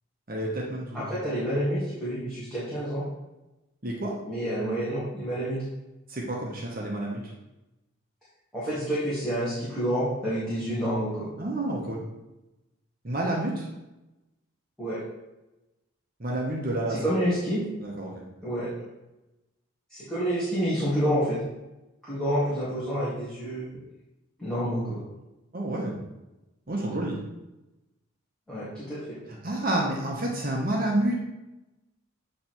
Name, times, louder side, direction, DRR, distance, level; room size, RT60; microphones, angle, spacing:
voice 1, 0.3-1.1 3.8-4.1 6.1-7.3 11.4-12.0 13.0-13.7 16.2-17.0 17.8-18.1 25.5-26.0 26.7-27.2 29.4-31.2, right 1 dB, 40° right, -2 dB, 1.0 m, -29 dB
voice 2, 0.9-3.0 4.3-5.6 8.5-11.3 14.8-15.0 16.9-17.6 18.4-18.7 19.9-21.4 22.0-23.7 24.4-25.0 28.5-29.2, equal, 5° left, -12 dB, 1.9 m, -28 dB
8.4 x 3.3 x 4.4 m, 0.99 s
head